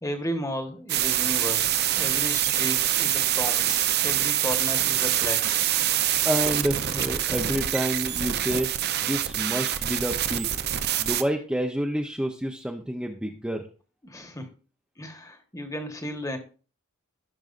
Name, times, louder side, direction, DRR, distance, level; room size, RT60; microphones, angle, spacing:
voice 1, 0.0-5.7 14.0-14.5 15.0-16.4, equal, 15° left, 6 dB, 1.3 m, -34 dB
sound 1, 0.9-11.2, right 11 dB, 50° right, 0.6 m, -25 dB
voice 2, 6.2-10.5 11.0-13.7, equal, 5° right, 1 dB, 0.6 m, -29 dB
15.5 x 6.2 x 2.5 m, 0.37 s
head